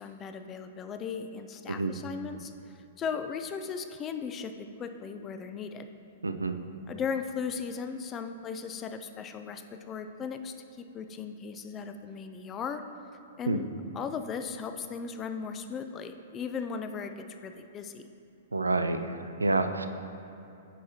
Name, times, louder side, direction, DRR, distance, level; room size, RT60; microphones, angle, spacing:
voice 1, 0.0-5.9 6.9-12.8 13.4-18.1, left 6 dB, 25° left, 8 dB, 0.3 m, -37 dB
voice 2, 6.2-6.6 13.5-13.6 18.5-19.9, right 2 dB, 85° right, 8 dB, 0.3 m, -28 dB
9.0 x 4.8 x 2.8 m, 2.7 s
figure-of-eight pair, 105°, 0 cm